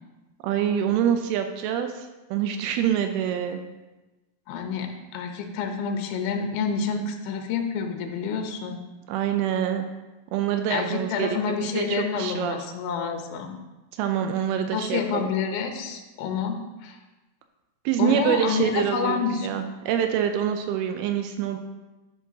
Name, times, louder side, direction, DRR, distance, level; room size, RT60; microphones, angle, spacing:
voice 1, 0.4-3.6 9.1-9.9 10.3-11.3 11.8-12.6 14.0-15.3 17.9-21.6, right 9 dB, 85° right, 6 dB, 2.6 m, -26 dB
voice 2, 4.5-8.8 10.7-13.5 14.7-17.0 18.0-19.5, left 6 dB, 75° left, 4 dB, 2.6 m, -28 dB
10.5 x 8.4 x 2.8 m, 1.1 s
omnidirectional pair, 4.5 m